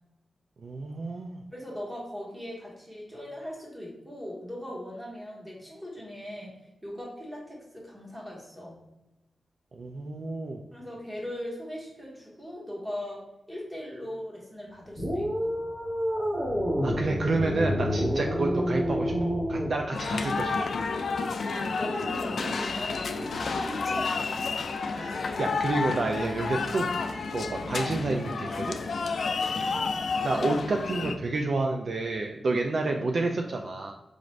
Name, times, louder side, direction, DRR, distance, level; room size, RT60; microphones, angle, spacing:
voice 1, 0.6-1.4 9.7-10.6 16.8-20.6 25.0-26.9 27.3-28.8 30.2-33.9, right 3 dB, 50° right, 2 dB, 0.3 m, -29 dB
voice 2, 1.5-6.5 6.8-8.8 10.7-13.2 13.5-15.6 21.5-24.4 29.4-30.0, left 1 dB, 10° right, -4 dB, 1.2 m, -39 dB
sound 1, 15.0-19.8, equal, 30° right, 1.0 m, -28 dB
sound 2, 19.9-31.2, left 4 dB, 60° left, 0.3 m, -30 dB
4.9 x 2.5 x 3.1 m, 0.94 s
wide cardioid pair, 175°, 0 cm